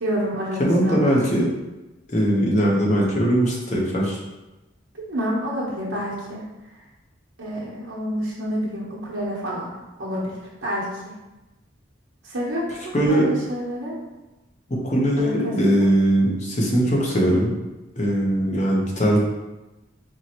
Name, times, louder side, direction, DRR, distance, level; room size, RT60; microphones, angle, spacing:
voice 1, 0.0-1.1 5.0-6.4 7.4-9.7 10.0-11.1 12.2-14.0 15.2-15.9, equal, 80° right, -6 dB, 1.0 m, -28 dB
voice 2, 0.6-1.5 2.1-4.2 12.9-13.2 14.7-17.5 18.0-19.2, right 1 dB, 35° left, -3 dB, 0.8 m, -20 dB
4.5 x 3.1 x 2.9 m, 1.1 s
head